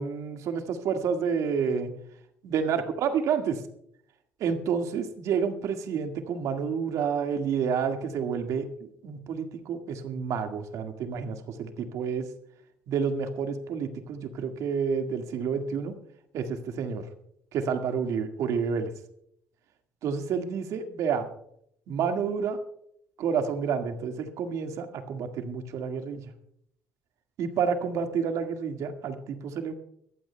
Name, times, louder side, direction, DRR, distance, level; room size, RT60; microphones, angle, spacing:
voice 1, 0.0-1.9 2.4-3.6 4.4-12.3 12.9-16.0 16.3-17.0 17.5-18.9 20.0-21.3 21.9-22.6 23.2-26.2 27.4-29.8, right 6 dB, 65° right, 5 dB, 1.8 m, -29 dB
23.0 x 15.0 x 2.3 m, 0.71 s
hypercardioid pair, 65°, 6 cm